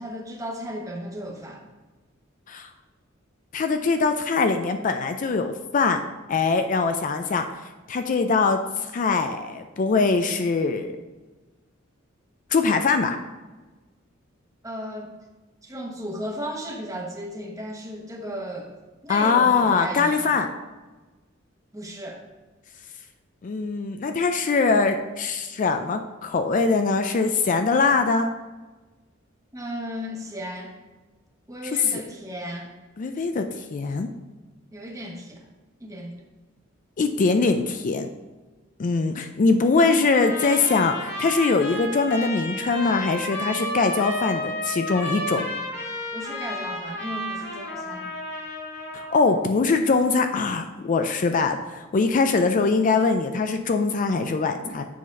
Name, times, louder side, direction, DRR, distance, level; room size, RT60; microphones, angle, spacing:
voice 1, 0.0-1.6 14.6-15.1 15.6-18.7 19.0-20.3 21.7-22.2 29.5-30.8 31.5-32.7 34.7-35.5 35.8-36.2 46.1-48.1 54.6-54.7, equal, 15° right, 0 dB, 1.1 m, -35 dB
voice 2, 3.5-6.0 6.3-7.5 7.9-10.9 12.5-13.2 19.1-20.5 23.4-28.3 31.9-32.0 33.0-34.1 37.0-38.1 38.8-45.5 48.9-54.8, left 4 dB, 40° left, 7 dB, 0.4 m, -22 dB
Trumpet, 40.1-49.2, left 1 dB, 60° left, 1.9 m, -32 dB
7.5 x 4.0 x 5.3 m, 1.2 s
head